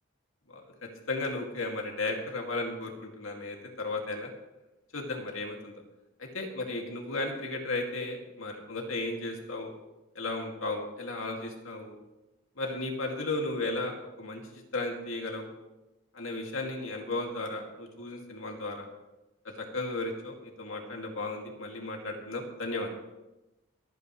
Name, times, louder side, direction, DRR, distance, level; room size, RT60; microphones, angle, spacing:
voice 1, 1.1-4.3 4.9-5.7 6.2-9.7 10.2-11.9 12.6-15.5 16.1-18.9 19.4-22.9, left 2 dB, 85° left, 1 dB, 2.3 m, -35 dB
24.0 x 9.2 x 3.2 m, 1.0 s
head